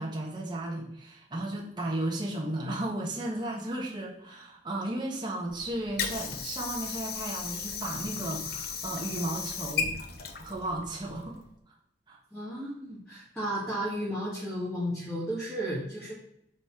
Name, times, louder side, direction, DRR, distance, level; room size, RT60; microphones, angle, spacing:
voice 1, 0.0-9.9 10.4-11.4 12.1-12.2, right 1 dB, 25° right, -2 dB, 1.5 m, -34 dB
Water / Sink (filling or washing), 5.5-11.5, left 6 dB, 55° left, 0.9 m, -36 dB
voice 2, 12.3-16.1, equal, 5° left, -8 dB, 2.1 m, -33 dB
8.0 x 4.3 x 5.9 m, 0.76 s
head